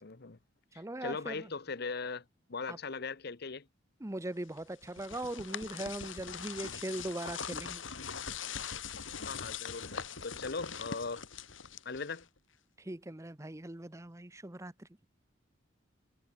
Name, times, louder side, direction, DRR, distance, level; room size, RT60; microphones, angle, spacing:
voice 1, 0.0-0.4 0.7-3.7 9.2-11.2 11.8-12.3, left 4 dB, 55° left, 1.0 m, -39 dB
voice 2, 0.7-1.5 2.7-2.8 4.0-7.8 12.8-14.9, right 1 dB, 15° right, 0.8 m, -40 dB
sound 1, 4.6-12.4, left 6 dB, 85° left, 3.0 m, -42 dB
head